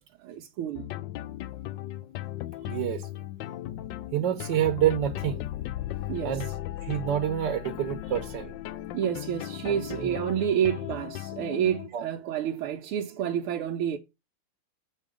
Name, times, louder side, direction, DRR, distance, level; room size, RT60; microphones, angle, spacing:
voice 1, 0.2-0.9 6.1-6.4 8.9-14.0, right 9 dB, 85° right, 1.6 m, -29 dB
sound 1, 0.7-11.9, left 13 dB, 75° left, 1.1 m, -37 dB
voice 2, 2.7-3.1 4.1-5.5 6.2-6.5 6.8-8.5 9.6-10.2 11.9-12.1, right 11 dB, 65° right, 1.4 m, -28 dB
7.4 x 4.8 x 4.9 m
omnidirectional pair, 2.3 m